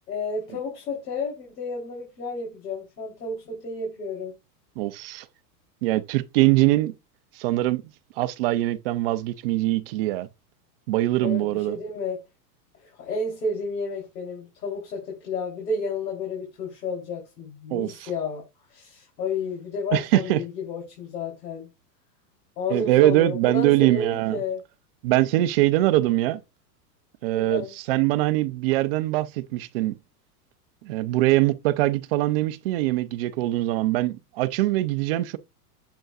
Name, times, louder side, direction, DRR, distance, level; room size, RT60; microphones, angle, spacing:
voice 1, 0.1-4.3 11.2-12.2 12.8-18.4 18.7-21.7 22.6-24.6 27.2-27.7, left 3 dB, 85° left, 3.5 m, -31 dB
voice 2, 4.8-5.3 5.8-6.9 7.3-7.8 8.2-10.3 10.9-11.8 17.7-18.1 19.9-20.4 22.7-24.4 25.0-26.4 27.2-30.0 30.8-35.4, right 16 dB, 40° right, 0.5 m, -22 dB
7.7 x 5.1 x 2.4 m
supercardioid pair, 150°, 48 cm